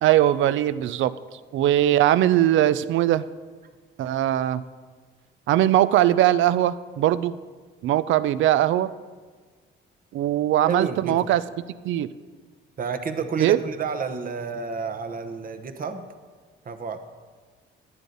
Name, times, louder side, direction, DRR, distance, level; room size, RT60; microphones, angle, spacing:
voice 1, 0.0-1.1 1.5-3.3 4.0-4.6 5.5-7.4 7.8-8.9 10.1-11.4 11.8-12.1 13.4-13.6, right 13 dB, 75° right, 15 dB, 0.4 m, -20 dB
voice 2, 10.7-11.2 12.8-16.1 16.7-17.0, right 5 dB, 45° right, 8 dB, 0.9 m, -30 dB
11.0 x 9.4 x 3.9 m, 1.5 s
cardioid pair, 90°, 20 cm